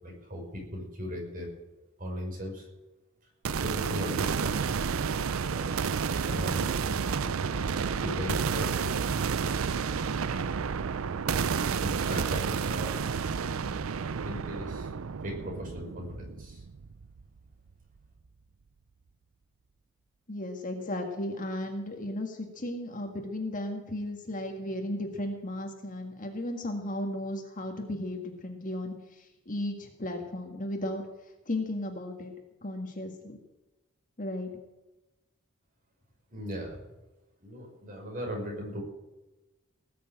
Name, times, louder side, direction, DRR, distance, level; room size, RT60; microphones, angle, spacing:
voice 1, 0.0-1.5 2.0-2.7 3.6-4.8 5.6-5.7 6.1-8.9 10.3-10.6 11.8-13.0 13.3-13.8 14.2-14.9 15.2-16.6 36.3-36.8 37.4-38.8, equal, 45° right, 1 dB, 5.3 m, -38 dB
sound 1, 3.4-17.4, right 6 dB, 85° right, 0.5 m, -30 dB
voice 2, 20.3-31.0 31.5-32.3 32.6-33.4 34.2-34.5, left 1 dB, 40° left, 3 dB, 1.8 m, -35 dB
19.0 x 6.9 x 8.8 m, 1.0 s
head